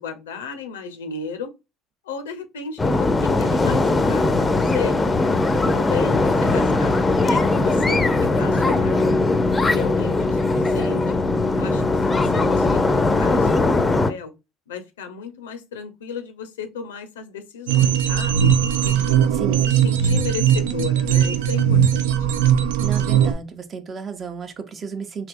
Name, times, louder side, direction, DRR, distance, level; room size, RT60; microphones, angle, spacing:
voice 1, 0.0-1.5 2.0-4.9 5.5-8.0 8.4-9.3 9.7-11.2 11.5-13.7 14.1-14.3 14.7-18.5 18.8-22.1, left 5 dB, 85° left, 0.6 m, -34 dB
sound 1, 2.8-14.1, left 3 dB, 20° left, 0.5 m, -20 dB
sound 2, 17.7-23.3, right 9 dB, 75° right, 0.4 m, -19 dB
voice 2, 22.8-25.3, right 6 dB, 40° right, 0.7 m, -32 dB
3.4 x 2.8 x 2.5 m
hypercardioid pair, 70°, 0 cm